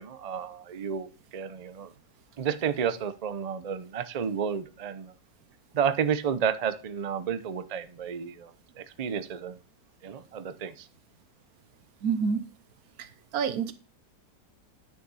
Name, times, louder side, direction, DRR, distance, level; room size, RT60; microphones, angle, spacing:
voice 1, 0.0-1.9 2.4-5.1 5.7-8.5 8.8-9.6 10.0-10.9, right 7 dB, 85° right, 11 dB, 0.3 m, -31 dB
voice 2, 12.0-12.5 13.0-13.7, right 6 dB, 70° right, 12 dB, 1.2 m, -28 dB
9.6 x 6.7 x 4.1 m, 0.35 s
omnidirectional pair, 1.7 m